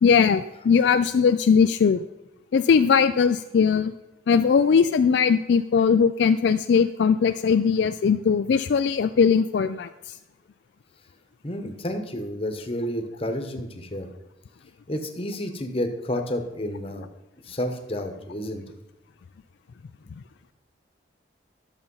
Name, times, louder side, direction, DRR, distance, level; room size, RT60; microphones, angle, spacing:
voice 1, 0.0-2.0 2.5-3.9 4.3-10.1, left 6 dB, 65° left, 10 dB, 0.3 m, -20 dB
voice 2, 11.4-14.1 14.9-17.1 17.4-18.6, left 1 dB, 30° left, 6 dB, 1.1 m, -30 dB
11.0 x 7.1 x 5.5 m, 0.95 s
head